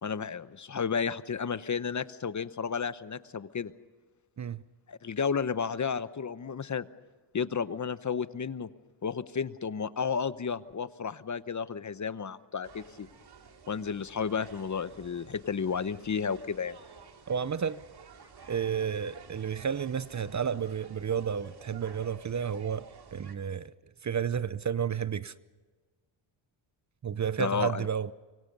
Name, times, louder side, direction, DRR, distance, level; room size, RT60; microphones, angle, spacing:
voice 1, 0.0-3.7 4.9-6.9 7.3-8.7 9.0-13.1 13.7-16.8 27.4-27.9, left 6 dB, 40° left, 0.9 m, -32 dB
sound 1, 12.6-23.4, right 5 dB, 50° right, 2.6 m, -52 dB
voice 2, 17.3-17.8 18.5-23.7 24.0-25.3 27.0-28.1, right 7 dB, 35° right, 0.7 m, -31 dB
25.5 x 24.0 x 5.5 m
cardioid pair, 95°, 48 cm